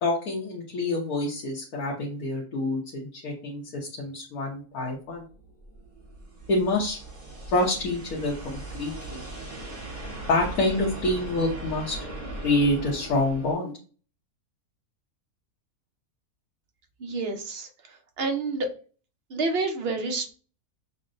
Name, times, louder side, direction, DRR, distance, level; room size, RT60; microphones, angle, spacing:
voice 1, 0.0-5.2 6.5-7.0 7.5-9.2 10.3-12.0 12.4-13.7, left 2 dB, 85° left, -3 dB, 1.4 m, -27 dB
sound 1, 5.3-13.5, right 2 dB, 30° right, 1.3 m, -39 dB
voice 2, 17.0-18.7 19.3-20.3, right 3 dB, 55° right, 5 dB, 0.7 m, -29 dB
6.4 x 2.1 x 2.5 m, 0.39 s
omnidirectional pair, 1.5 m